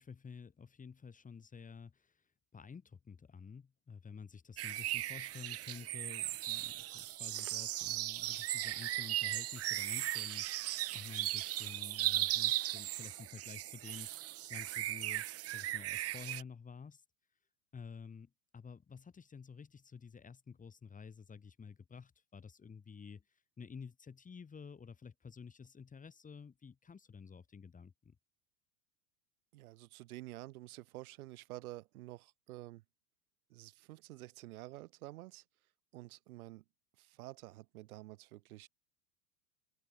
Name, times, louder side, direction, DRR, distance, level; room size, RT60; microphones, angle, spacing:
voice 1, 0.0-2.2 2.5-15.2 15.5-17.0 17.7-23.2 23.6-28.2, left 6 dB, 15° left, 3.3 m, -51 dB
sound 1, 4.6-16.4, right 15 dB, 30° right, 1.2 m, -37 dB
voice 2, 29.5-32.8 33.5-35.4 35.9-36.6 37.0-38.7, right 17 dB, 65° right, 6.6 m, -50 dB
open air
hypercardioid pair, 110°, 46 cm